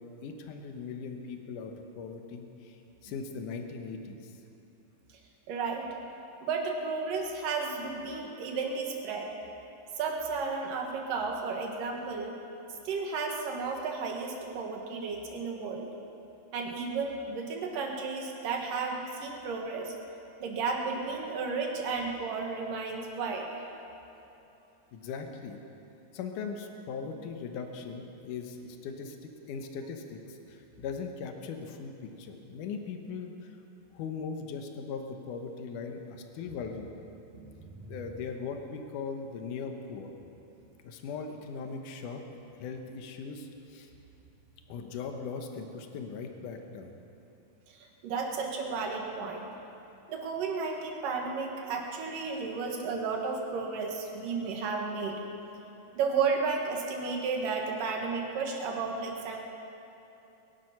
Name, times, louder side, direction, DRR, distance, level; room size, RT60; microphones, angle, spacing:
voice 1, 0.2-4.3 24.9-25.6 26.1-33.6 33.9-37.0 37.8-40.1 40.8-42.2 42.5-43.9 44.7-46.9, left 5 dB, 75° left, 4 dB, 1.9 m, -39 dB
voice 2, 5.5-5.9 6.4-9.3 10.0-12.3 12.8-15.9 16.5-19.9 20.4-23.5 37.3-38.0 47.7-49.5 50.1-55.2 56.0-59.4, right 4 dB, 60° right, 1 dB, 2.8 m, -33 dB
22.0 x 11.0 x 5.8 m, 2.9 s
omnidirectional pair, 5.0 m